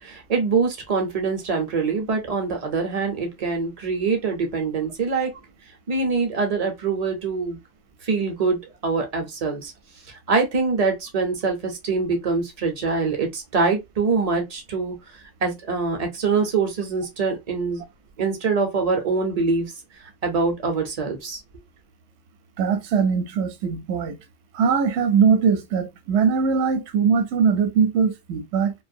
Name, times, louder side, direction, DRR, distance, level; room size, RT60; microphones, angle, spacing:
voice 1, 0.0-5.3 5.9-7.6 8.0-8.6 8.8-9.7 10.1-14.9 15.4-17.8 18.2-19.7 20.2-21.4, right 4 dB, 40° right, 0.6 m, -24 dB
voice 2, 22.6-24.2 24.5-28.7, right 6 dB, 65° right, 0.8 m, -21 dB
2.5 x 2.3 x 2.5 m
omnidirectional pair, 1.3 m